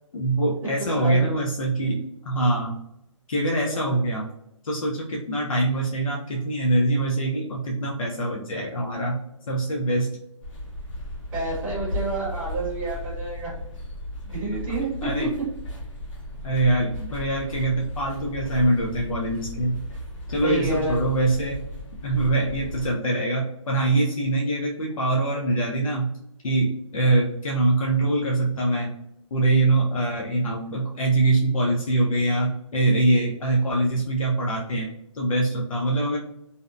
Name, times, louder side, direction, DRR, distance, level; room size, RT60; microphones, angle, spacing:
voice 1, 0.1-2.8 3.3-4.3 4.6-9.2 9.5-10.1 15.0-15.3 16.4-19.8 20.3-21.6 22.0-26.1 26.4-28.9 29.3-34.9 35.1-36.2, right 2 dB, 85° left, -2 dB, 0.6 m, -23 dB
voice 2, 0.8-1.2 3.6-3.9 11.3-13.5 14.3-15.3 20.4-21.0, right 2 dB, 10° right, -10 dB, 0.7 m, -29 dB
sound 1, 10.4-22.9, left 1 dB, 65° left, 1.2 m, -35 dB
2.7 x 2.1 x 2.5 m, 0.78 s
hypercardioid pair, 170°, 17 cm